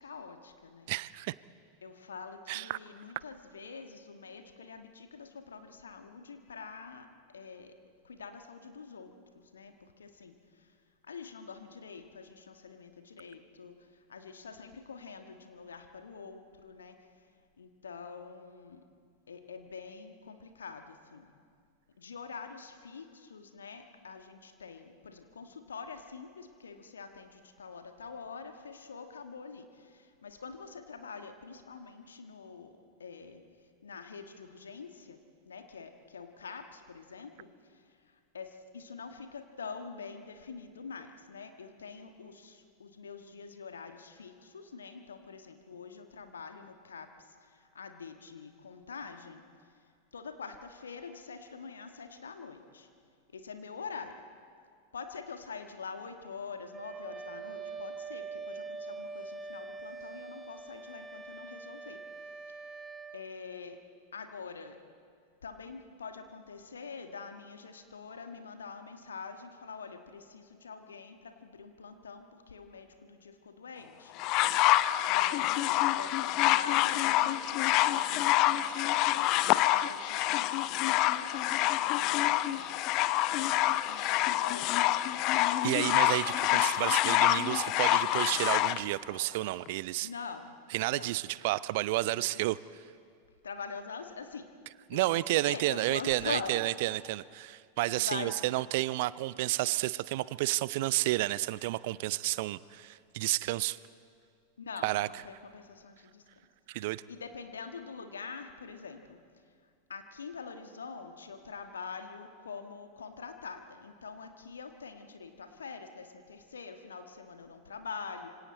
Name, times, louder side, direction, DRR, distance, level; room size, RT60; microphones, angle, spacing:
voice 1, 0.0-0.9 1.8-7.0 7.3-7.7 8.1-9.1 9.5-9.7 10.0-10.3 11.1-13.7 14.1-16.9 17.6-18.8 19.3-21.3 22.0-27.3 27.6-29.7 30.2-32.7 33.0-33.4 33.8-35.2 35.5-37.5 38.3-42.5 42.8-47.1 47.7-49.4 50.1-52.9 53.3-54.1 54.9-62.0 63.1-63.8 64.1-64.7 65.4-72.2 72.5-74.1 75.0-82.8 83.3-84.7 85.8-85.9 90.0-90.5 90.9-91.1 92.1-92.3 93.4-94.5 94.9-95.1 95.5-96.5 98.0-98.3 104.6-104.9 105.5-106.2 107.1-109.0 109.9-118.3, left 5 dB, 70° left, 7 dB, 1.5 m, -45 dB
voice 2, 0.9-1.3 2.5-2.8 85.6-90.1 90.7-92.8 94.7-103.8 104.8-105.3 106.7-107.0, right 18 dB, 50° right, 19 dB, 0.4 m, -31 dB
Wind instrument woodwind instrument, 56.7-63.2, right 4 dB, 15° right, 1.0 m, -43 dB
sound 1, 74.2-88.8 89.7-89.8, left 15 dB, 40° left, 0.5 m, -27 dB
26.5 x 24.5 x 4.2 m, 2.1 s
figure-of-eight pair, 90°, 0 cm